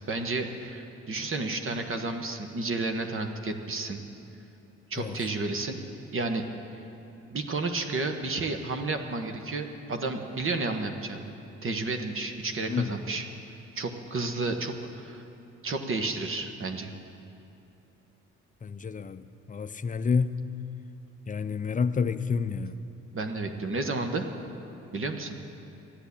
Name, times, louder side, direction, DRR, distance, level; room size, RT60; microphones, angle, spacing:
voice 1, 0.1-4.0 4.9-5.8 6.1-6.4 7.3-11.2 11.6-13.3 13.7-15.2 15.6-16.9 23.1-24.3 24.9-25.4, right 3 dB, 45° right, 5 dB, 1.3 m, -31 dB
voice 2, 18.6-20.4 21.3-22.8, left 5 dB, 25° left, 12 dB, 0.5 m, -29 dB
13.0 x 10.0 x 8.5 m, 2.8 s
cardioid pair, 90°, 30 cm